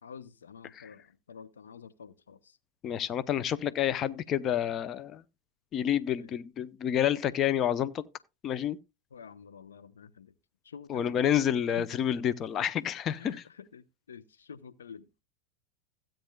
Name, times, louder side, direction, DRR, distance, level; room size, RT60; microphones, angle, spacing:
voice 1, 0.0-2.6 4.0-4.1 6.2-6.4 9.1-10.3 10.6-11.2 11.8-12.0 13.2-15.1, left 7 dB, 80° left, 0.8 m, -48 dB
voice 2, 2.8-5.2 5.7-8.0 8.4-8.8 10.9-13.4, left 10 dB, 35° left, 0.7 m, -29 dB
16.0 x 8.9 x 2.3 m
hypercardioid pair, 90°, 0 cm